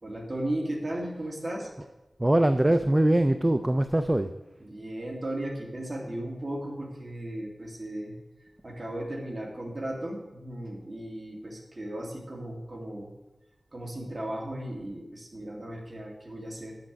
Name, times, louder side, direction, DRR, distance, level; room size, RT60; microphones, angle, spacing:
voice 1, 0.0-1.7 4.6-8.2 8.6-13.1 13.7-16.8, right 1 dB, 35° right, -1 dB, 2.4 m, -36 dB
voice 2, 2.2-4.3, right 1 dB, 20° right, 9 dB, 0.4 m, -22 dB
10.0 x 7.9 x 5.2 m, 1.0 s
wide cardioid pair, 85°, 0 cm